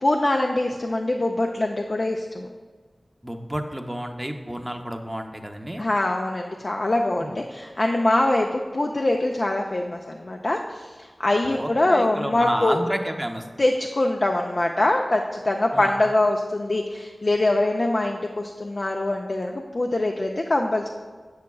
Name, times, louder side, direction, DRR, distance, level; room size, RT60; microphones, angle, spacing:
voice 1, 0.0-2.5 5.8-10.9 11.2-12.8 13.6-20.9, left 2 dB, 55° left, 2 dB, 0.4 m, -23 dB
voice 2, 3.2-5.8 7.2-7.3 11.4-13.4 15.7-15.9, equal, 15° right, 4 dB, 0.6 m, -30 dB
7.4 x 7.1 x 2.3 m, 1.5 s
cardioid pair, 40°, 0 cm